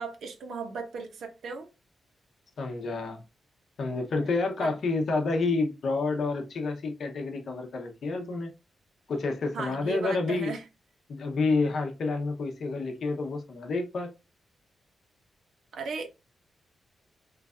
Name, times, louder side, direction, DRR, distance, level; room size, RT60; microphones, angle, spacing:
voice 1, 0.0-1.7 4.2-4.3 4.6-4.7 9.5-10.6 15.7-16.1, right 4 dB, 70° right, 0.8 m, -36 dB
voice 2, 2.6-3.2 3.8-8.5 9.1-10.5 11.1-14.1, left 3 dB, 50° left, 0.7 m, -29 dB
3.2 x 2.4 x 3.4 m
wide cardioid pair, 175°, 0 cm